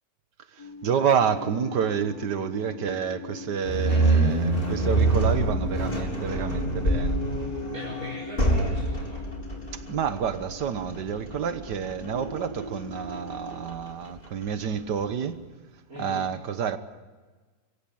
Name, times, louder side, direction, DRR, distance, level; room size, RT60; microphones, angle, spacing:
voice 1, 0.5-7.2 9.7-15.5 16.0-16.8, right 7 dB, 70° right, 1.7 m, -29 dB
sound 1, 0.6-13.6, left 4 dB, 65° left, 4.7 m, -40 dB
sound 2, 3.6-14.8, right 2 dB, 30° left, 4.0 m, -27 dB
voice 2, 3.9-4.3 7.7-9.2 15.9-16.3, equal, 50° right, 5.3 m, -40 dB
24.5 x 16.5 x 8.8 m
omnidirectional pair, 1.9 m